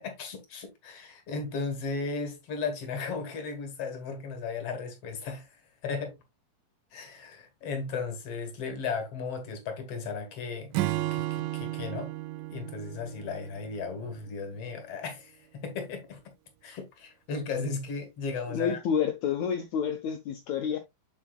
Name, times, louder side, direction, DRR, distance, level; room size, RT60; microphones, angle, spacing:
voice 1, 0.0-6.2 6.9-10.7 11.1-12.1 12.5-16.2 16.6-18.8, left 4 dB, 50° left, 2.1 m, -35 dB
Acoustic guitar / Strum, 10.7-14.2, right 16 dB, 80° right, 2.1 m, -33 dB
voice 2, 18.5-20.8, left 7 dB, 80° left, 1.7 m, -29 dB
7.3 x 7.1 x 2.3 m
omnidirectional pair, 4.2 m